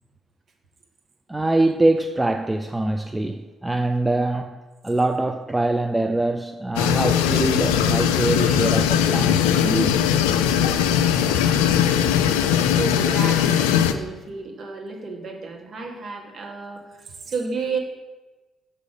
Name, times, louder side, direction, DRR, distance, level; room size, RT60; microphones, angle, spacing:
voice 1, 1.3-10.1, right 2 dB, 15° right, 0.4 m, -24 dB
sound 1, 6.8-13.9, left 9 dB, 70° left, 0.3 m, -20 dB
voice 2, 12.6-17.8, right 4 dB, 45° right, 1.4 m, -32 dB
6.3 x 5.5 x 5.1 m
figure-of-eight pair, 45°, 0 cm